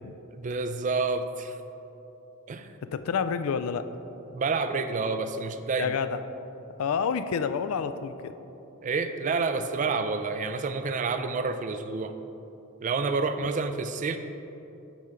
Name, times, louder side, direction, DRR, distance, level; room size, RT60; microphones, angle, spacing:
voice 1, 0.3-1.6 2.5-2.8 4.3-6.0 8.8-12.2 12.8-14.2, right 4 dB, 35° right, 9 dB, 0.4 m, -29 dB
voice 2, 2.9-3.9 5.8-6.2 6.8-8.3, left 6 dB, 90° left, 11 dB, 0.4 m, -29 dB
8.2 x 4.3 x 5.1 m, 3.0 s
head